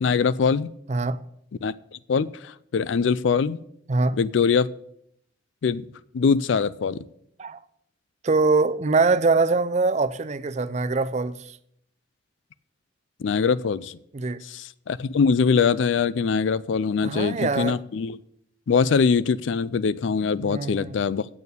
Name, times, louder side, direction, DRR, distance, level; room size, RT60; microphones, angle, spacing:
voice 1, 0.0-0.7 1.6-1.7 2.1-3.6 4.2-4.7 5.6-5.9 6.1-7.0 13.2-14.0 14.4-18.2 18.7-21.3, left 5 dB, 80° left, 0.4 m, -23 dB
voice 2, 0.9-1.2 3.9-4.2 7.4-7.6 8.2-11.6 14.1-14.4 17.0-17.8 20.4-21.0, right 3 dB, 35° right, 0.5 m, -23 dB
8.6 x 6.8 x 8.2 m
head